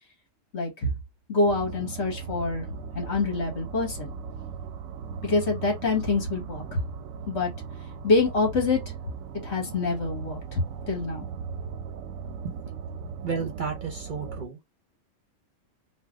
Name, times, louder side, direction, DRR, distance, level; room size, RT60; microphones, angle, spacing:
voice 1, 0.5-0.9 1.3-2.6 2.9-4.1 5.2-6.8 7.3-7.5 8.0-8.8 9.4-10.6 10.9-11.3, left 3 dB, 60° left, 1.5 m, -26 dB
sound 1, 1.4-14.5, right 6 dB, 90° right, 1.0 m, -38 dB
voice 2, 13.2-14.6, right 5 dB, 45° right, 0.7 m, -32 dB
3.4 x 2.2 x 3.5 m
omnidirectional pair, 1.3 m